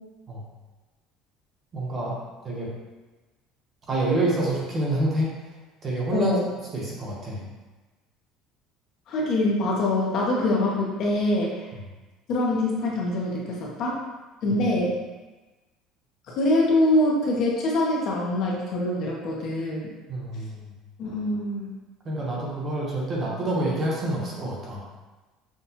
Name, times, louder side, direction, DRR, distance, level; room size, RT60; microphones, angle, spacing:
voice 1, 1.7-2.2 2.4-2.7 3.9-5.6 5.8-6.3 6.7-7.5 11.7-11.9 14.5-14.6 20.1-20.7 22.0-24.8, right 1 dB, 30° right, -4 dB, 0.9 m, -27 dB
voice 2, 6.1-6.5 9.1-11.6 12.3-14.0 14.4-14.9 16.3-19.9 21.0-21.8, left 1 dB, 45° left, -3 dB, 0.7 m, -24 dB
5.8 x 2.3 x 2.8 m, 1.2 s
cardioid pair, 165°, 0 cm